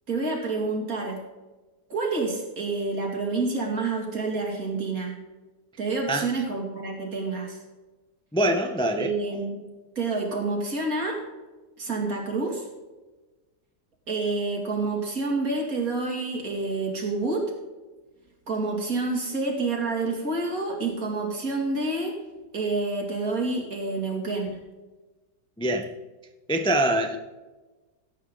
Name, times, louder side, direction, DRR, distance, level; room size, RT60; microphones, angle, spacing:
voice 1, 0.1-1.2 1.9-5.2 5.8-7.6 9.0-9.7 9.9-11.2 11.8-12.7 14.1-17.5 18.5-22.2 22.5-24.6, right 3 dB, 65° right, 0 dB, 3.1 m, -28 dB
voice 2, 8.3-9.1 25.6-25.9 26.5-27.2, right 1 dB, 5° left, 6 dB, 0.5 m, -24 dB
16.0 x 8.5 x 3.9 m, 1.2 s
omnidirectional pair, 1.7 m